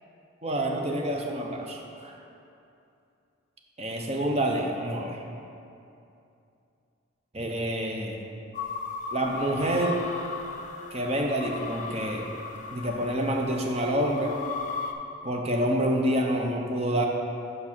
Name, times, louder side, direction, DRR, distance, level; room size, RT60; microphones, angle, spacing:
voice 1, 0.4-2.2 3.8-5.2 7.3-8.2 9.1-10.0 10.9-12.3 12.7-14.3 15.2-17.1, right 1 dB, 30° right, 1 dB, 0.7 m, -27 dB
sound 1, 8.5-14.9, left 4 dB, 35° left, 0.5 m, -37 dB
6.1 x 5.3 x 6.0 m, 2.7 s
head